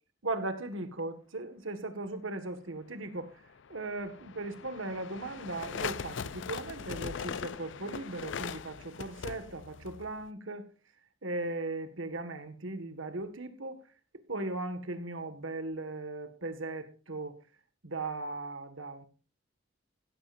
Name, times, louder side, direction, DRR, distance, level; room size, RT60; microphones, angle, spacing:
voice 1, 0.2-3.3 3.7-10.6 11.2-13.8 14.1-17.4 17.8-19.1, right 2 dB, 85° right, 1.8 m, -38 dB
sound 1, 3.5-10.3, left 6 dB, 65° left, 0.5 m, -41 dB
16.0 x 14.0 x 2.6 m
head